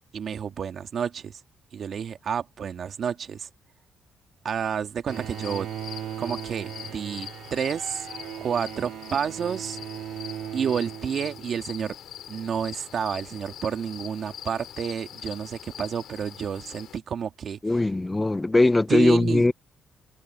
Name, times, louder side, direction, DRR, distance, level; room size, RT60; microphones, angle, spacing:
voice 1, 0.1-1.4 1.7-3.5 4.4-5.7 6.2-8.1 8.4-9.8 10.5-12.0 12.3-17.9 18.9-19.4, right 7 dB, 55° right, 2.2 m, -30 dB
sound 1, 5.1-17.0, left 10 dB, 75° left, 5.8 m, -43 dB
Bowed string instrument, 5.1-11.8, right 11 dB, 80° right, 2.4 m, -38 dB
voice 2, 17.6-19.5, left 2 dB, 15° left, 0.5 m, -20 dB
cardioid pair, 90°, 0 cm